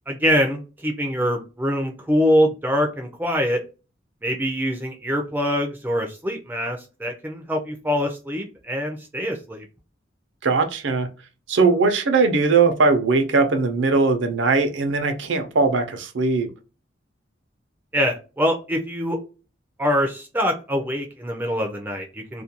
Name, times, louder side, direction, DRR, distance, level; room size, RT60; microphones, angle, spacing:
voice 1, 0.1-3.6 4.2-9.6 17.9-19.2 19.8-22.4, equal, 10° right, 0.4 m, -24 dB
voice 2, 10.4-11.1 11.5-16.5, right 4 dB, 80° right, 0.6 m, -20 dB
2.4 x 2.2 x 2.8 m
head